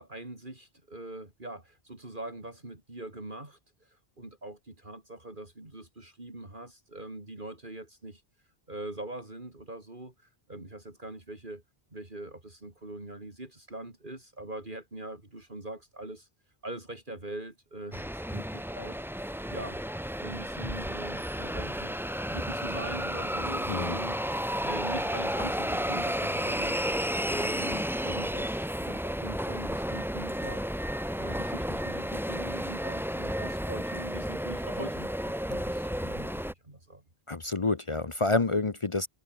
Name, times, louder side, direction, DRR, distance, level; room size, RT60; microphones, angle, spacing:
voice 1, 0.0-8.2 8.7-11.6 11.9-16.3 16.6-19.0 19.5-19.8 20.2-22.0 22.3-26.8 27.2-30.6 31.2-37.0, right 2 dB, 50° right, 4.5 m, -42 dB
sound 1, 17.9-36.5, equal, ahead, 1.4 m, -32 dB
voice 2, 37.3-39.1, left 3 dB, 30° left, 0.9 m, -28 dB
omnidirectional pair, 1.0 m